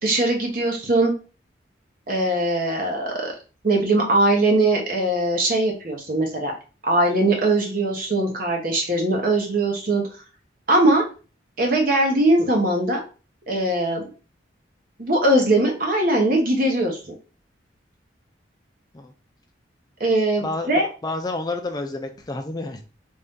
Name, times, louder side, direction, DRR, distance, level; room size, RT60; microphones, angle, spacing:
voice 1, 0.0-1.1 2.1-3.3 3.6-6.5 6.8-10.0 10.7-11.0 11.6-13.0 13.5-14.0 15.0-17.0 20.0-20.9, right 2 dB, 50° right, 1 dB, 1.1 m, -20 dB
voice 2, 21.0-22.8, left 2 dB, 20° left, 5 dB, 0.4 m, -29 dB
3.4 x 2.7 x 3.6 m, 0.34 s
head